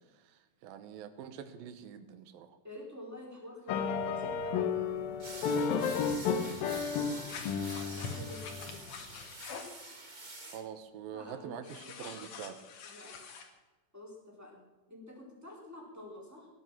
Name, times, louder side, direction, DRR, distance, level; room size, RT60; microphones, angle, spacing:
voice 1, 0.2-2.6 10.5-12.6, right 8 dB, 85° right, 10 dB, 2.9 m, -45 dB
voice 2, 2.6-4.7 5.1-7.3 7.9-9.0 11.1-12.6 12.8-13.3 13.9-16.5, left 1 dB, 5° right, -2 dB, 3.8 m, -49 dB
sound 1, 3.7-9.0, left 6 dB, 90° left, 3.0 m, -33 dB
sound 2, 5.2-10.6, right 2 dB, 40° right, 0.6 m, -47 dB
sound 3, 7.3-9.8 11.6-13.5, left 6 dB, 65° left, 3.0 m, -46 dB
18.5 x 10.5 x 6.2 m, 1.2 s
omnidirectional pair, 4.0 m